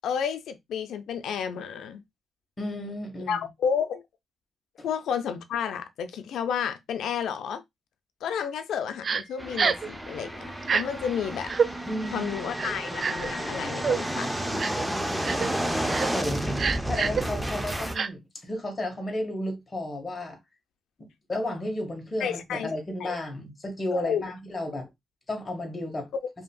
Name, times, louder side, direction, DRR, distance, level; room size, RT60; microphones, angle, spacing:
voice 1, 0.0-2.0 3.3-4.0 4.8-7.6 8.2-11.6 12.1-14.6 22.2-22.7 23.0-23.2 23.9-24.2, left 7 dB, 85° left, 0.4 m, -31 dB
voice 2, 2.6-3.5 4.8-4.9 11.9-12.3 16.1-16.5 16.9-20.4 21.0-24.9 25.3-26.1, left 1 dB, 30° left, 1.5 m, -33 dB
Crying sobbing, 9.0-9.2 9.6-9.9 10.6-10.8 11.5-11.7 12.6-13.3 13.8-14.0 14.6-14.8 15.2-15.5 15.9-16.1 16.6-17.2 17.9-18.1, right 6 dB, 50° right, 0.3 m, -26 dB
sound 1, 9.4-18.0, right 1 dB, 5° right, 0.6 m, -31 dB
5.0 x 2.8 x 2.2 m
cardioid pair, 95°, 0 cm